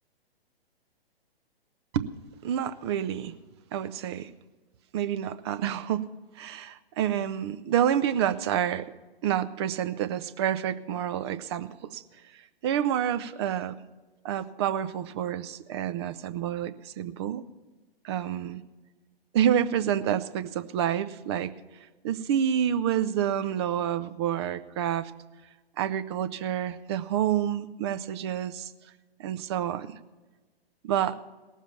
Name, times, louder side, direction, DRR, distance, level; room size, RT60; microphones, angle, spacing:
voice 1, 2.4-3.3 3.7-4.3 4.9-6.1 6.4-8.9 9.2-12.0 12.6-13.8 14.2-17.4 18.0-18.6 19.3-21.5 22.0-25.1 25.8-28.7 29.2-29.9 30.8-31.2, right 10 dB, 25° right, 13 dB, 0.5 m, -28 dB
18.0 x 7.3 x 7.1 m, 1.2 s
figure-of-eight pair, 125°, 31 cm